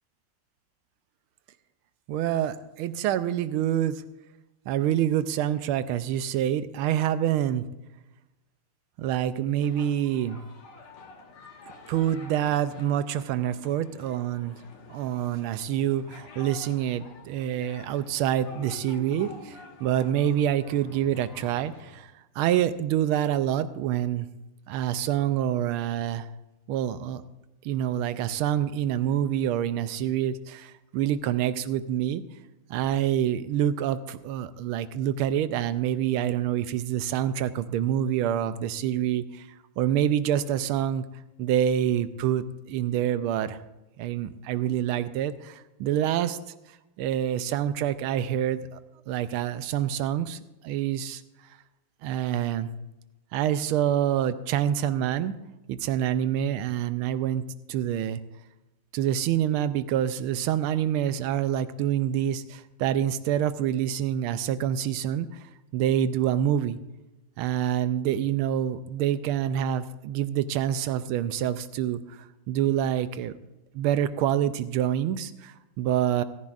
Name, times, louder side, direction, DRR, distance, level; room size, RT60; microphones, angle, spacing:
voice 1, 2.1-4.0 4.7-7.6 9.0-10.4 11.9-14.6 14.9-24.3 24.7-26.3 26.7-27.2 27.6-32.2 32.7-39.5 39.8-41.0 41.4-43.6 44.0-46.4 47.0-48.8 49.1-51.2 52.0-52.7 53.3-55.4 55.7-57.4 57.7-58.2 58.9-65.4 65.7-66.8 67.4-72.2 72.5-73.3 73.7-76.2, right 10 dB, 85° right, 13 dB, 1.5 m, -26 dB
sound 1, 9.6-22.0, left 3 dB, 85° left, 2.3 m, -48 dB
15.5 x 14.0 x 2.5 m, 0.99 s
omnidirectional pair, 2.3 m